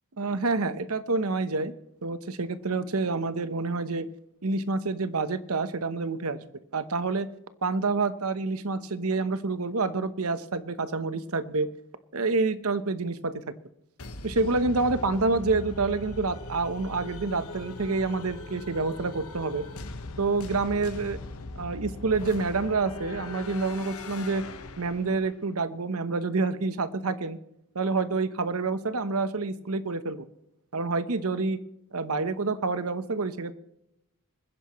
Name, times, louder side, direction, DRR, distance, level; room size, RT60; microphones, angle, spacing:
voice 1, 0.2-1.7 2.0-4.1 4.4-6.4 6.7-7.3 7.6-11.7 12.1-13.4 14.2-19.6 20.2-21.2 21.6-24.4 24.8-27.4 27.7-30.3 30.7-31.6 31.9-33.5, right 3 dB, 70° right, 12 dB, 1.0 m, -28 dB
sound 1, 14.0-25.4, left 2 dB, 70° left, 1.2 m, -40 dB
26.0 x 10.5 x 3.1 m, 0.82 s
head